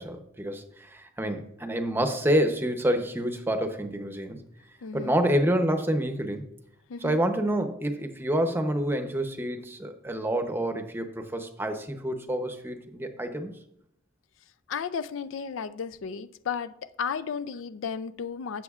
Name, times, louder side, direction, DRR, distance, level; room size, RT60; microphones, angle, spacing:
voice 1, 0.0-4.4 4.9-6.4 7.0-13.5, right 1 dB, 10° right, 0.7 m, -28 dB
voice 2, 4.8-5.2 6.9-7.2 14.7-18.6, left 6 dB, 90° left, 0.4 m, -34 dB
13.5 x 7.7 x 2.4 m
head